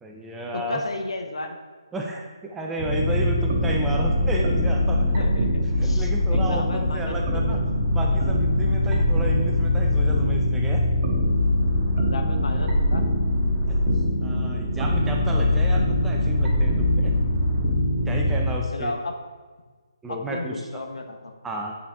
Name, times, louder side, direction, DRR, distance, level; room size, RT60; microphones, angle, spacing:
voice 1, 0.0-0.8 1.9-5.1 5.8-7.6 7.9-10.8 13.7-13.8 14.2-17.1 18.1-18.9 20.0-20.6 21.4-21.8, right 2 dB, 5° right, 0 dB, 0.5 m, -32 dB
voice 2, 0.5-1.6 5.2-7.6 12.0-13.0 18.4-19.1 20.1-21.3, left 2 dB, 75° left, 5 dB, 0.9 m, -33 dB
sound 1, 2.8-18.5, left 1 dB, 30° right, 1.4 m, -22 dB
8.4 x 4.1 x 3.5 m, 1.4 s
hypercardioid pair, 160°, 3 cm